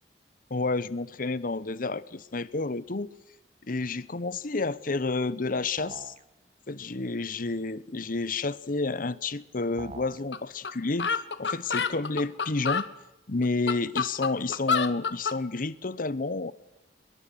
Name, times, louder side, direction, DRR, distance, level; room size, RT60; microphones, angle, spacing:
voice 1, 0.5-3.1 3.7-6.1 6.7-12.9 13.3-16.5, left 3 dB, 50° left, 0.9 m, -30 dB
sound 1, 5.8-6.2 9.8-10.2, right 3 dB, 40° right, 1.0 m, -43 dB
sound 2, 10.3-10.4 10.6-10.7 11.0-12.9 13.4-15.4, left 5 dB, 75° left, 1.3 m, -28 dB
23.5 x 22.5 x 8.0 m
head